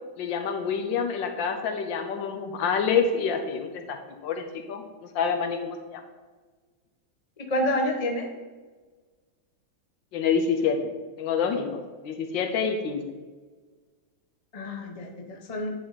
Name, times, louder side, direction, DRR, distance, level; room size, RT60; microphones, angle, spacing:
voice 1, 0.2-4.8 5.1-6.0 10.1-10.8 11.2-13.0, left 6 dB, 80° left, 5 dB, 1.5 m, -27 dB
voice 2, 7.5-8.3 14.5-15.7, left 1 dB, 40° left, 1 dB, 0.5 m, -28 dB
10.0 x 4.1 x 4.0 m, 1.4 s
omnidirectional pair, 2.1 m